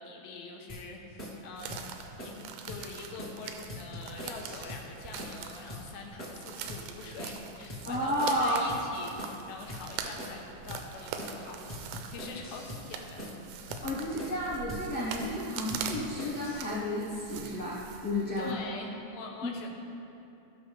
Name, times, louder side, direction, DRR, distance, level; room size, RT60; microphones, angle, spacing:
voice 1, 0.0-1.9 2.2-11.8 12.0-13.3 18.4-19.7, left 4 dB, 75° left, 1 dB, 2.7 m, -44 dB
sound 1, 0.7-0.8 1.2-1.4 1.7-1.8 2.2-2.4 2.7-2.8 3.2-3.4 3.7-4.8 5.2-5.4 5.7-5.8 6.2-6.4 6.7-6.8 7.2-7.4 7.7-8.8 9.2-9.4 9.7-9.8 10.2-10.4 10.7-10.8 11.2-11.4 11.7-12.8 13.2-13.4 13.7-13.8 14.2-14.4 14.7-14.8 15.2-15.4 15.7-16.7, left 1 dB, 20° left, 1.4 m, -42 dB
sound 2, 1.6-18.5, right 7 dB, 85° right, 2.6 m, -43 dB
voice 2, 7.8-8.7 13.8-18.5, left 1 dB, 55° left, -9 dB, 1.4 m, -32 dB
16.5 x 6.1 x 3.4 m, 2.8 s
omnidirectional pair, 4.5 m